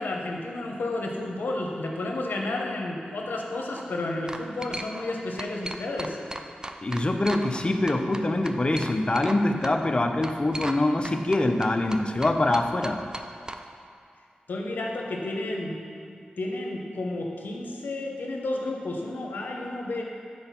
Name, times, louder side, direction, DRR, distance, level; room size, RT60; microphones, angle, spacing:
voice 1, 0.0-6.2 14.5-15.8 16.1-20.0, left 2 dB, 80° left, 1 dB, 0.9 m, -31 dB
sound 1, 3.5-3.8 4.3-5.1 5.4-7.6 7.9-9.4 9.6-9.7 10.2-10.8 11.0-13.6, right 1 dB, 25° right, 0.5 m, -36 dB
voice 2, 6.8-13.0, left 2 dB, 35° left, 5 dB, 0.6 m, -24 dB
7.9 x 4.3 x 5.7 m, 2.3 s
cardioid pair, 50°, 3 cm